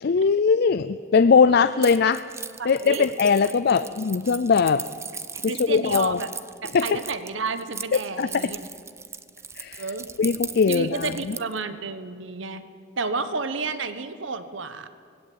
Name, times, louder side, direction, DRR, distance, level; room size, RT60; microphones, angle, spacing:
voice 1, 0.0-2.2 2.7-4.8 5.4-6.2 6.7-7.0 7.9-8.5 9.6-9.8 10.2-11.1, left 5 dB, 55° left, 12 dB, 0.4 m, -20 dB
Keys jangling, 1.8-11.6, right 5 dB, 15° right, 0.6 m, -37 dB
voice 2, 2.6-3.1 3.7-3.9 5.3-6.3 6.6-8.6 9.8-10.1 10.7-12.6 13.0-14.9, right 4 dB, 70° right, 11 dB, 1.1 m, -31 dB
19.0 x 16.5 x 8.6 m, 2.2 s
head